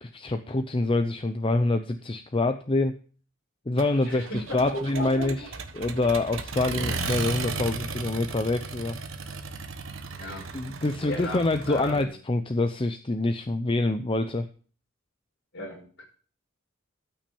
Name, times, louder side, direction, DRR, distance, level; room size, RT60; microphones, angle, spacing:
voice 1, 0.0-2.9 3.7-5.4 5.7-9.0 10.5-14.5, left 2 dB, 25° left, 8 dB, 0.6 m, -26 dB
Accelerating revving vroom, 3.8-12.0, right 4 dB, 65° right, 1.2 m, -36 dB
voice 2, 4.0-5.3 6.8-7.0 10.2-10.4 11.1-12.1 15.5-16.0, left 1 dB, 55° left, -2 dB, 6.2 m, -36 dB
13.0 x 6.1 x 7.0 m, 0.41 s
head